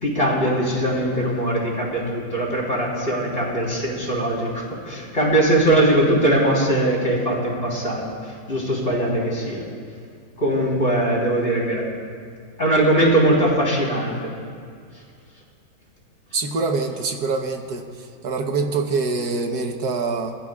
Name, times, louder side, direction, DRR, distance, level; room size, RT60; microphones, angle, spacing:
voice 1, 0.0-9.7 10.4-11.8 12.6-14.3, right 1 dB, 35° left, -4 dB, 3.8 m, -21 dB
voice 2, 16.3-20.4, right 4 dB, 80° right, 4 dB, 1.6 m, -25 dB
24.5 x 15.0 x 2.4 m, 2.2 s
omnidirectional pair, 1.7 m